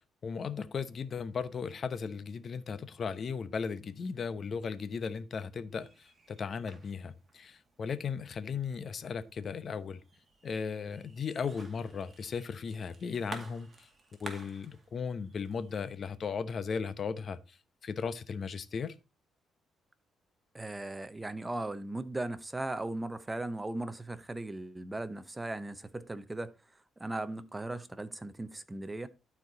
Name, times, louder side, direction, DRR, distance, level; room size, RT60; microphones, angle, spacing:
voice 1, 0.2-10.0 10.4-13.9 14.2-17.6 17.8-18.9, left 6 dB, 50° left, 0.8 m, -36 dB
sound 1, 5.7-16.0, right 3 dB, 30° right, 2.1 m, -53 dB
voice 2, 20.5-26.5 27.0-29.1, right 2 dB, 15° right, 0.8 m, -37 dB
12.0 x 4.6 x 4.0 m
cardioid pair, 90°, 0 cm